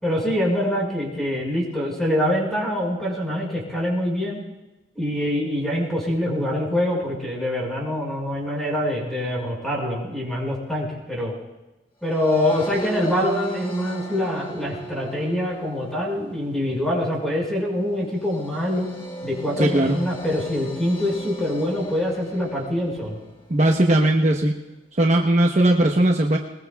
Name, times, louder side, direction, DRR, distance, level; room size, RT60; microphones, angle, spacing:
voice 1, 0.0-4.4 5.0-11.3 12.0-18.9 19.2-23.2, left 1 dB, ahead, -4 dB, 5.2 m, -25 dB
sound 1, 12.1-23.4, right 2 dB, 30° left, 1.4 m, -37 dB
voice 2, 19.6-20.0 23.5-24.6 25.0-26.4, right 1 dB, 40° right, 1 dB, 1.0 m, -18 dB
21.0 x 20.5 x 2.4 m, 1.0 s
head